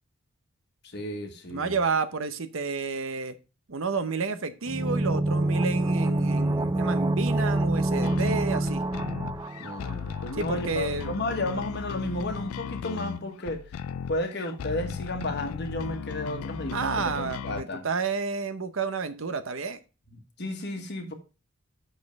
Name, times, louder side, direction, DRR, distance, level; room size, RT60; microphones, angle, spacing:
voice 1, 0.8-1.8 9.6-13.7 14.1-17.9 20.4-21.1, left 1 dB, 50° left, 1.4 m, -33 dB
voice 2, 1.5-3.3 3.7-8.8 10.3-11.2 16.7-19.8, right 4 dB, 60° right, 0.8 m, -30 dB
sound 1, 4.7-10.4 10.6-10.7, right 1 dB, 15° right, 0.4 m, -26 dB
sound 2, 8.0-17.6, left 7 dB, 75° left, 0.3 m, -36 dB
6.4 x 5.5 x 5.2 m
head